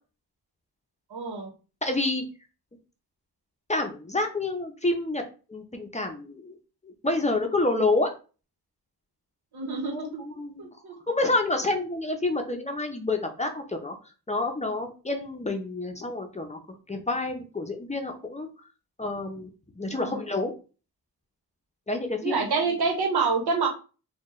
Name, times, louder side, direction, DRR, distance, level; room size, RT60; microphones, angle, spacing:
voice 1, 1.1-1.5 9.5-10.2 10.6-10.9 19.9-20.2 22.2-23.7, right 4 dB, 85° right, 2 dB, 1.1 m, -27 dB
voice 2, 1.8-2.3 3.7-5.2 5.5-6.5 6.8-8.1 9.9-10.7 11.1-13.9 14.3-16.6 16.9-18.5 19.0-19.5 19.8-20.5 21.9-22.5, left 2 dB, 20° left, 4 dB, 0.6 m, -28 dB
4.3 x 2.3 x 3.1 m, 0.34 s
wide cardioid pair, 100°, 38 cm